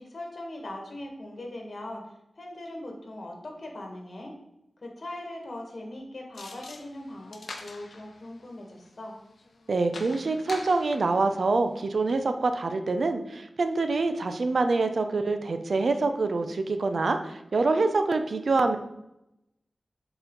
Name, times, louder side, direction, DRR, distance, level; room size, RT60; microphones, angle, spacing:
voice 1, 0.0-2.0 2.3-4.3 4.8-9.2, left 1 dB, 55° left, 1 dB, 1.6 m, -40 dB
sound 1, 6.3-11.3 11.8-11.9, left 3 dB, 75° left, 0.7 m, -45 dB
voice 2, 9.7-18.8, right 3 dB, 70° right, 8 dB, 0.6 m, -25 dB
6.7 x 4.4 x 3.9 m, 0.86 s
wide cardioid pair, 80°, 0 cm